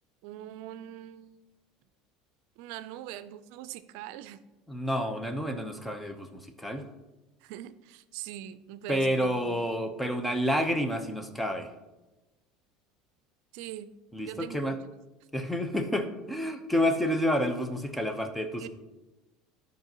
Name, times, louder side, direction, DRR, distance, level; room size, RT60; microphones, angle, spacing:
voice 1, 0.2-1.4 2.6-4.4 7.4-9.7 13.5-13.9 14.2-14.8 18.6-18.7, right 12 dB, 70° right, 14 dB, 0.5 m, -42 dB
voice 2, 4.7-6.8 8.9-11.7 14.1-14.8 15.3-18.7, equal, 5° left, 6 dB, 0.9 m, -29 dB
13.0 x 5.2 x 3.0 m, 1.1 s
supercardioid pair, 110°, 0 cm